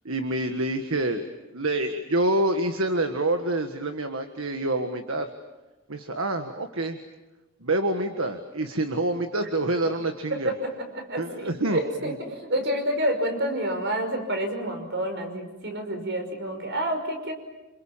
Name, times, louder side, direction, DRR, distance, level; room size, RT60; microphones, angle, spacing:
voice 1, 0.0-1.2 1.5-5.3 5.9-7.0 7.6-10.5 11.2-11.8, right 1 dB, 70° right, 6 dB, 1.7 m, -27 dB
voice 2, 10.4-17.3, right 1 dB, 55° right, 6 dB, 5.5 m, -29 dB
28.5 x 28.0 x 7.4 m, 1.1 s
head